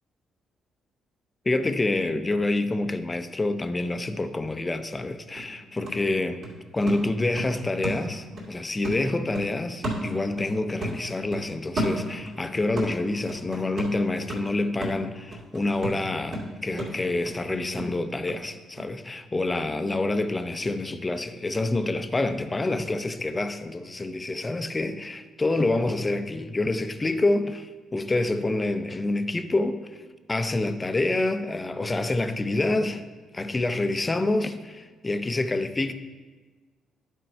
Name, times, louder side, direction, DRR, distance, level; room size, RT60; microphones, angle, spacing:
voice 1, 1.5-6.4 6.7-29.8 30.3-33.0 33.3-35.9, left 2 dB, 20° left, 0.5 m, -27 dB
sound 1, 4.9-5.0 5.4-8.5 8.8-10.6 10.8-12.4 12.8-18.4 18.8-18.9, right 1 dB, 60° right, 2.3 m, -34 dB
10.5 x 4.4 x 4.5 m
cardioid pair, 90°, 0 cm